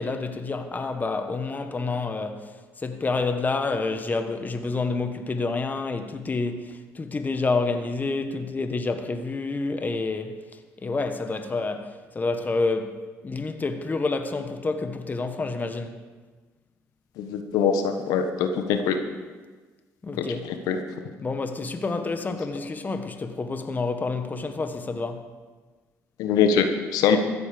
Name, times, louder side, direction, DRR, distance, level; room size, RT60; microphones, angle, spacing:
voice 1, 0.0-16.0 20.0-20.5 21.2-25.3, left 3 dB, 30° left, 1.4 m, -28 dB
voice 2, 17.2-18.9 20.7-20.8 26.2-26.7 26.9-27.2, left 7 dB, 80° left, 1.3 m, -22 dB
14.5 x 8.6 x 7.0 m
supercardioid pair, 75°, 6 cm